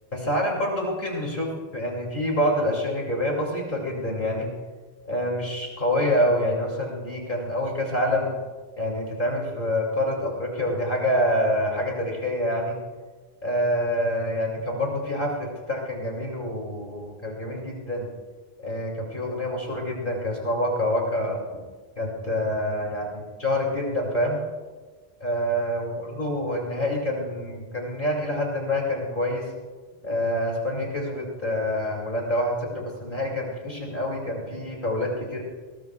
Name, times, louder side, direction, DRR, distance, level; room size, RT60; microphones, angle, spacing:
voice 1, 0.1-4.5 5.1-8.3 8.8-12.8 13.4-18.1 18.6-21.4 22.0-24.4 25.2-29.4 30.0-35.4, left 1 dB, 50° left, -1 dB, 2.9 m, -26 dB
20.0 x 19.0 x 2.4 m, 1.4 s
omnidirectional pair, 1.1 m